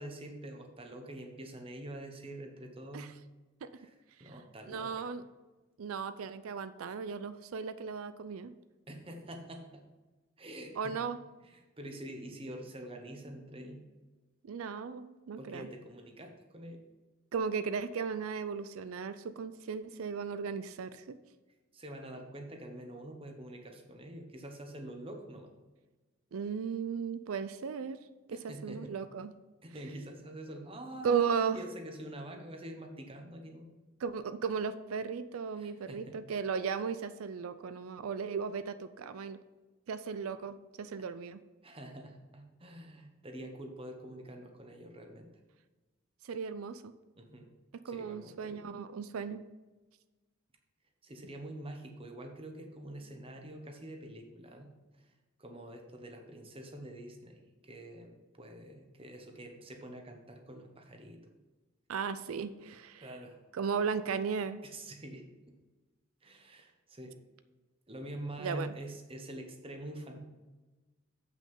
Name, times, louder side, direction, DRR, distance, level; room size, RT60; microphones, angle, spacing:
voice 1, 0.0-3.1 3.7-3.9 4.2-5.1 8.9-9.8 10.4-11.0 11.4-13.8 15.4-16.8 21.7-25.5 28.3-28.9 29.6-33.7 35.6-36.2 41.6-45.3 47.2-47.5 47.9-48.6 51.0-54.7 55.0-55.1 55.4-61.2 63.0-63.4 64.6-65.3 66.2-67.1 67.9-70.2, right 1 dB, 25° right, 4 dB, 1.1 m, -46 dB
voice 2, 4.7-5.2 5.8-8.5 10.8-11.2 14.4-15.7 17.3-21.2 26.3-29.3 31.0-31.6 34.0-39.4 39.9-41.4 46.2-46.9 47.8-49.4 61.9-63.1 63.5-64.6 68.4-68.7, right 6 dB, 90° right, 12 dB, 0.4 m, -36 dB
7.8 x 6.1 x 5.4 m, 1.2 s
head